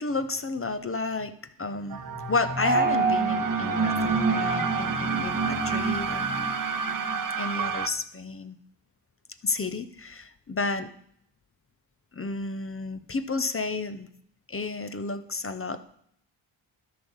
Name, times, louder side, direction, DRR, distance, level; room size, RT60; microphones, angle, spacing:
voice 1, 0.0-6.6 6.9-7.0 7.4-8.6 9.4-10.9 12.1-14.1 14.5-16.0, left 3 dB, 30° left, 11 dB, 0.7 m, -31 dB
sound 1, 1.9-7.9, right 6 dB, 45° right, 0.7 m, -31 dB
sound 2, 2.6-7.2, right 4 dB, 20° right, 0.9 m, -27 dB
13.0 x 4.9 x 5.5 m, 0.69 s
cardioid pair, 60°, 46 cm